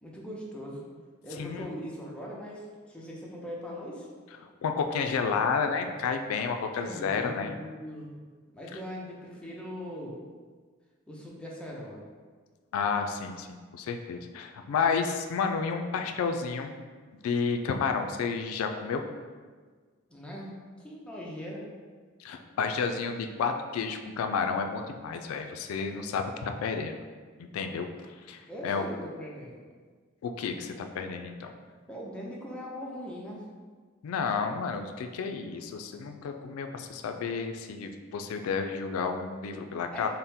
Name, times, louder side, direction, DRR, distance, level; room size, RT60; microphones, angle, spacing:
voice 1, 0.0-0.9 1.2-4.1 6.7-8.2 8.5-10.2 11.1-12.0 20.1-20.5 20.8-21.7 28.5-29.6 31.9-33.4 39.9-40.1, equal, 5° left, -4 dB, 0.5 m, -40 dB
voice 2, 4.4-7.6 12.7-16.7 17.1-19.0 22.2-26.9 27.5-27.9 28.3-28.8 30.2-31.5 34.0-40.1, left 5 dB, 90° left, 9 dB, 0.3 m, -31 dB
3.5 x 2.0 x 4.2 m, 1.5 s
head